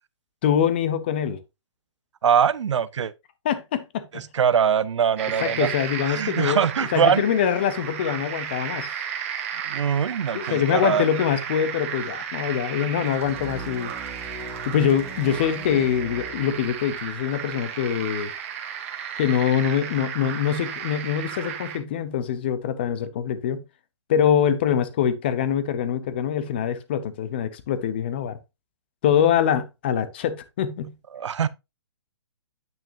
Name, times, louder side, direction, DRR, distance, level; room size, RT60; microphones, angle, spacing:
voice 1, 0.4-1.4 3.4-4.3 5.4-6.6 6.9-9.0 10.3-13.9 14.7-18.3 19.2-23.6 24.1-28.4 29.0-30.9, left 9 dB, 20° left, 0.6 m, -24 dB
voice 2, 2.2-3.1 4.1-5.7 6.1-7.2 9.6-11.1 31.1-31.5, right 7 dB, 80° right, 0.6 m, -22 dB
sound 1, 5.2-21.8, right 8 dB, 25° right, 1.3 m, -34 dB
sound 2, 13.2-17.0, right 3 dB, 5° right, 1.5 m, -40 dB
8.9 x 6.0 x 2.6 m
hypercardioid pair, 175°, 15 cm